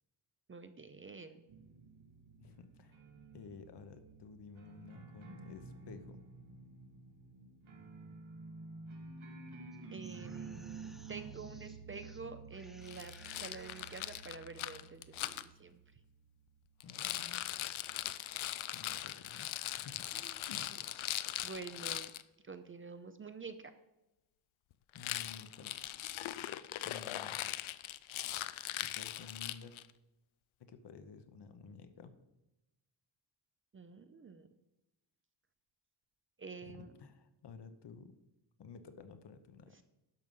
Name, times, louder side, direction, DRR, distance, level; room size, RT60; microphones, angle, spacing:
voice 1, 0.5-1.4 9.9-15.8 18.1-18.4 20.1-20.4 21.4-22.1 22.4-23.7 33.7-34.5 36.4-36.9, right 4 dB, 30° right, 10 dB, 0.5 m, -48 dB
sound 1, 1.5-16.8, right 4 dB, 85° right, 2.1 m, -51 dB
voice 2, 2.4-3.0 3.3-6.2 16.8-17.5 18.7-20.1 20.5-20.8 24.9-25.8 26.8-27.4 28.8-29.7 30.6-32.2 36.6-38.1 38.6-39.8, left 5 dB, 60° left, 9 dB, 1.0 m, -53 dB
sound 2, 9.7-12.2 12.5-14.4, equal, ahead, 1.0 m, -61 dB
Rattle, 12.9-15.4 16.8-22.2 24.9-29.9, left 13 dB, 80° left, 0.6 m, -40 dB
11.5 x 6.3 x 5.4 m, 0.95 s
wide cardioid pair, 160°, 47 cm